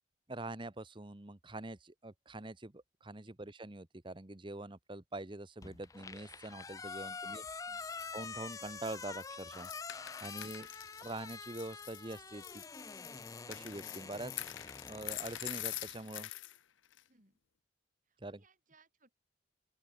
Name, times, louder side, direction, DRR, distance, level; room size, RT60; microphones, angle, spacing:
voice 1, 0.3-7.4 8.1-9.7 10.2-10.7 11.0-12.6 13.5-14.3 14.9-16.3 18.2-18.4, right 2 dB, 25° right, 1.1 m, -44 dB
sound 1, 5.6-15.9, left 4 dB, 15° left, 0.3 m, -46 dB
voice 2, 7.0-7.9 10.9-11.0 15.8-16.3 17.1-17.4 18.1-19.1, right 3 dB, 40° right, 6.4 m, -69 dB
sound 2, 7.8-16.6 16.9-17.0, left 15 dB, 80° left, 0.8 m, -46 dB
open air
head